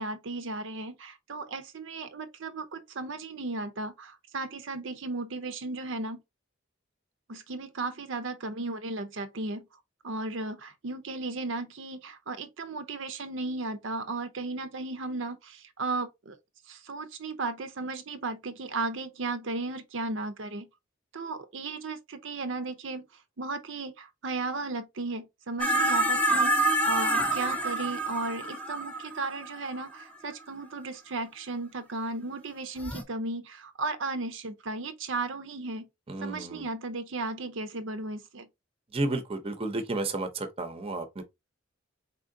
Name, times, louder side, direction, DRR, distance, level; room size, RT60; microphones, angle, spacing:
voice 1, 0.0-6.2 7.3-9.7 10.0-16.4 16.7-20.7 21.1-23.1 23.4-35.9 36.2-38.5, right 3 dB, 70° right, 0.6 m, -35 dB
sound 1, 25.6-30.0 32.8-33.0, right 1 dB, 5° left, 0.6 m, -27 dB
voice 2, 36.1-36.7 38.9-41.2, right 2 dB, 30° right, 0.7 m, -32 dB
4.2 x 3.7 x 2.6 m
head